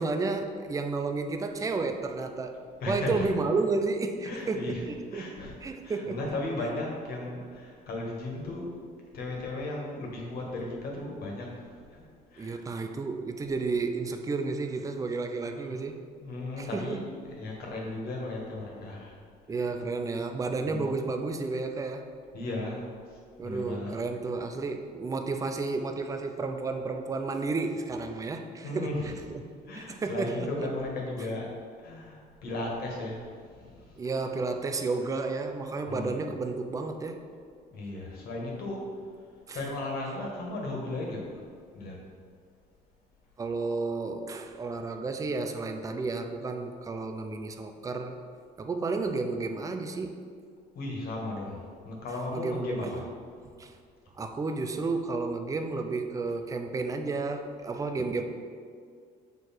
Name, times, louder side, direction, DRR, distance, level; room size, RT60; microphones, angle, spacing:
voice 1, 0.0-2.5 2.9-5.3 5.6-6.2 12.4-16.0 16.6-17.1 19.5-22.1 23.4-29.4 29.7-30.5 34.0-37.2 39.5-39.6 43.4-48.2 48.6-50.2 52.3-53.0 53.6-53.7 54.2-58.2, right 3 dB, 20° right, 6 dB, 0.5 m, -32 dB
voice 2, 2.8-3.3 4.2-4.8 5.1-8.7 9.1-12.0 12.3-12.6 15.6-15.7 16.2-19.2 19.5-19.7 20.7-21.0 22.3-22.9 23.4-23.9 28.6-29.2 29.7-31.5 31.8-33.2 33.5-34.0 35.9-36.2 37.7-38.8 39.5-41.3 41.7-42.1 50.8-53.1, left 2 dB, 65° left, -2 dB, 1.8 m, -36 dB
6.6 x 4.6 x 4.4 m, 2.1 s
cardioid pair, 110°, 17 cm